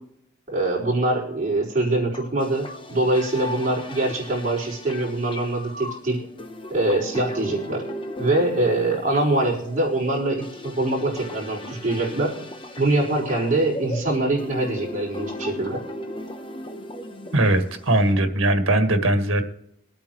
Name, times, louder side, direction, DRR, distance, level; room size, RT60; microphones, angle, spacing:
voice 1, 0.5-6.2 6.7-7.8 8.2-12.3 12.8-15.8, right 2 dB, 40° right, -5 dB, 4.7 m, -23 dB
sound 1, 2.1-18.1, equal, 25° left, 0.8 m, -37 dB
voice 2, 17.3-19.4, right 1 dB, 85° right, 6 dB, 1.7 m, -20 dB
23.0 x 8.8 x 3.1 m, 0.74 s
head